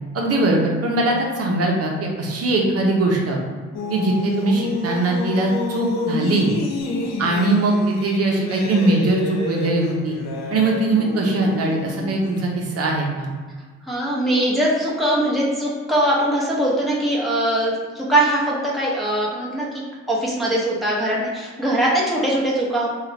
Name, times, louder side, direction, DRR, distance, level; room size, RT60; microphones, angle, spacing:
voice 1, 0.1-3.4 3.9-6.5 7.2-10.2 10.5-13.3, right 2 dB, 50° right, -1 dB, 0.9 m, -21 dB
sound 1, 3.7-12.6, left 3 dB, 65° left, 0.6 m, -29 dB
voice 2, 13.9-19.7 20.1-22.9, right 1 dB, ahead, -5 dB, 1.0 m, -21 dB
3.6 x 2.4 x 3.4 m, 1.5 s
cardioid pair, 90°, 30 cm